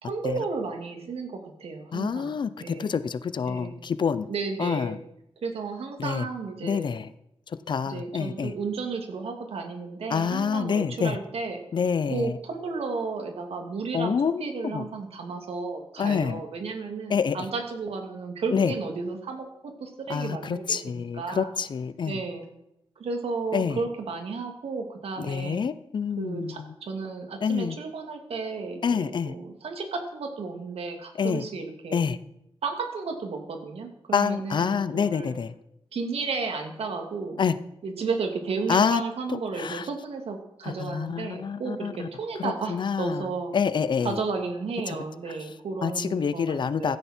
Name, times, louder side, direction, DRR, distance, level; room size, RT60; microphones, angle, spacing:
voice 1, 0.0-2.3 2.6-3.0 3.4-3.8 4.3-5.0 5.4-6.9 7.9-11.6 12.1-21.5 22.1-22.5 23.0-25.6 26.2-32.1 32.6-35.4 35.9-37.4 37.8-43.5 44.0-47.0, right 4 dB, 85° right, 4 dB, 2.5 m, -33 dB
voice 2, 1.9-4.3 4.6-5.0 6.0-6.3 6.6-7.1 7.7-8.5 10.1-11.2 11.7-12.4 13.9-14.8 16.0-16.4 17.1-17.4 18.5-18.7 20.1-22.2 23.5-23.8 25.2-26.6 27.4-27.8 28.8-29.3 31.2-31.4 31.9-32.2 34.1-35.5 37.4-37.5 38.7-39.0 39.6-39.9 40.6-42.1 42.4-43.2 43.5-44.2 44.9-45.0 45.8-47.0, left 6 dB, 50° left, 14 dB, 0.7 m, -27 dB
16.5 x 12.5 x 4.5 m, 0.82 s
wide cardioid pair, 175°, 10 cm